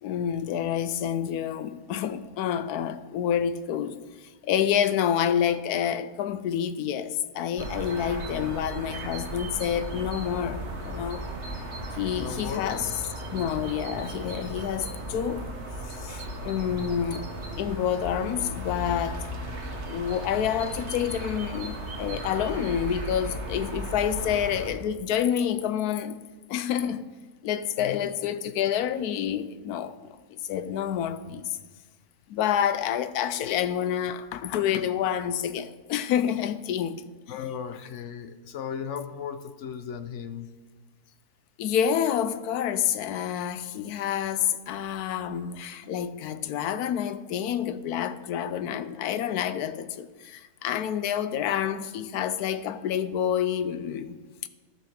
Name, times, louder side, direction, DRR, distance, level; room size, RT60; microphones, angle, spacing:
voice 1, 0.0-11.3 11.9-12.8 13.3-15.5 15.9-19.2 19.9-26.2 26.5-27.0 27.4-31.6 32.3-37.0 37.3-37.4 41.6-54.2 54.4-54.5, left 9 dB, 85° left, 1.1 m, -28 dB
sound 1, 7.6-24.7, right 1 dB, 50° right, 1.4 m, -36 dB
voice 2, 12.1-12.7 16.7-17.0 27.8-28.1 37.3-40.5, left 8 dB, 60° left, 0.8 m, -36 dB
12.5 x 5.6 x 6.4 m
omnidirectional pair, 1.6 m